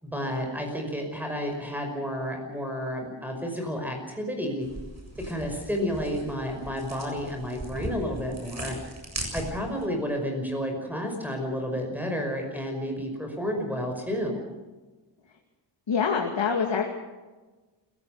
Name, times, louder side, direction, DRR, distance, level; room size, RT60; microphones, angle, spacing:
voice 1, 0.0-4.7 5.2-8.8 9.3-14.4, equal, 5° right, 2 dB, 5.5 m, -31 dB
sound 1, 4.6-9.8, right 1 dB, 35° right, 7.7 m, -39 dB
voice 2, 15.9-16.9, left 6 dB, 70° left, 1 dB, 2.5 m, -25 dB
29.0 x 16.0 x 6.6 m, 1.3 s
wide cardioid pair, 90°, 45 cm